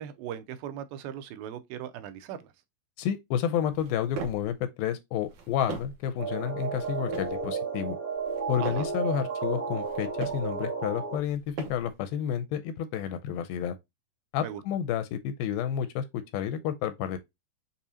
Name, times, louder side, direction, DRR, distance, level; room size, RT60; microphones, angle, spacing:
voice 1, 0.0-2.4 8.6-8.9 14.4-14.6, right 10 dB, 85° right, 2.4 m, -38 dB
voice 2, 3.0-8.0 8.5-11.4 11.7-13.8 14.3-17.2, left 9 dB, 85° left, 2.3 m, -30 dB
sound 1, 3.7-4.5 5.2-6.1 6.7-7.4 8.1-9.0 9.7-10.5 11.2-12.0, right 6 dB, 65° right, 2.1 m, -41 dB
sound 2, 6.2-11.2, right 5 dB, 30° right, 1.7 m, -32 dB
6.7 x 2.7 x 2.7 m
omnidirectional pair, 4.3 m